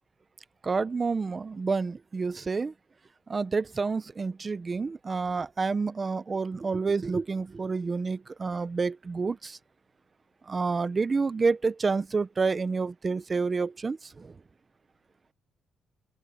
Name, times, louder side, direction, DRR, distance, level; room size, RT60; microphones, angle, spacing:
voice 1, 0.6-2.7 3.3-9.6 10.5-14.3, right 4 dB, 25° right, 0.5 m, -29 dB
open air
cardioid pair, 155°, 0 cm